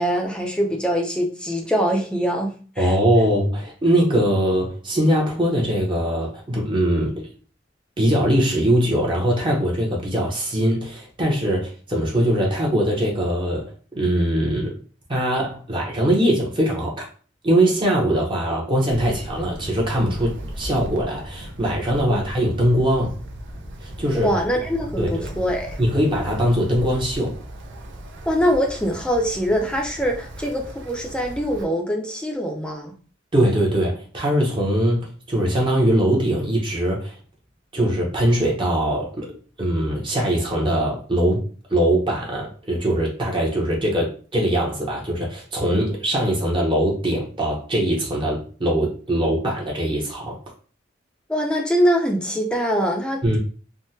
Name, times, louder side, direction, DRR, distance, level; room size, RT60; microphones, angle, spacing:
voice 1, 0.0-2.9 22.1-22.2 24.1-25.8 28.3-32.9 51.3-53.4, equal, 5° left, 0.5 m, -23 dB
voice 2, 2.8-7.3 8.0-14.8 15.1-17.0 17.4-23.2 23.8-24.3 25.0-25.3 25.8-27.4 33.3-37.2 37.7-39.3 39.6-50.4 53.2-53.4, right 1 dB, 30° right, 0.8 m, -21 dB
Wind, 18.9-31.6, right 1 dB, 70° right, 0.5 m, -36 dB
3.5 x 2.1 x 2.7 m
head